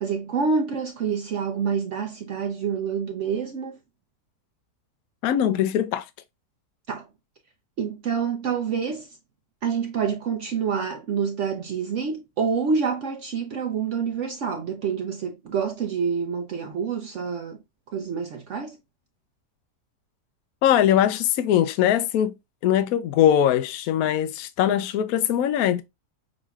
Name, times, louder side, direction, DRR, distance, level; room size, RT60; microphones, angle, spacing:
voice 1, 0.0-3.8 6.9-7.1 7.8-9.2 9.6-17.6 17.9-18.8, right 6 dB, 60° right, 0.9 m, -27 dB
voice 2, 5.2-6.1 20.6-22.3 22.6-25.8, left 10 dB, 75° left, 1.0 m, -21 dB
6.2 x 3.0 x 2.3 m
omnidirectional pair, 1.6 m